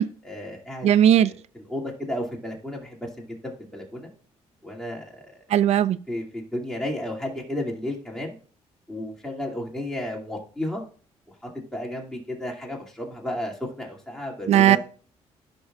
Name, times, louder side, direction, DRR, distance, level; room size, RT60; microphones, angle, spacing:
voice 1, 0.2-0.9 1.2-4.1 4.6-5.2 6.1-8.4 8.9-10.8 11.7-14.8, left 1 dB, 5° left, 2.4 m, -33 dB
voice 2, 0.8-1.3 5.5-6.0 14.5-14.8, right 10 dB, 65° right, 0.4 m, -17 dB
15.0 x 5.4 x 2.4 m
cardioid pair, 95°, 12 cm